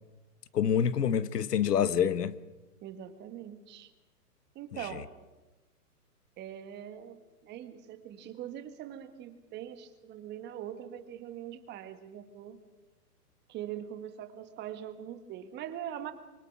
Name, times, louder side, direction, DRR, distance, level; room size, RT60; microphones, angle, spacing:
voice 1, 0.5-2.4 4.7-5.0, left 8 dB, 75° left, 1.3 m, -27 dB
voice 2, 2.8-3.9 4.5-5.1 6.4-12.6 13.5-16.1, right 10 dB, 20° right, 1.6 m, -42 dB
24.0 x 24.0 x 6.1 m
hypercardioid pair, 135°, 47 cm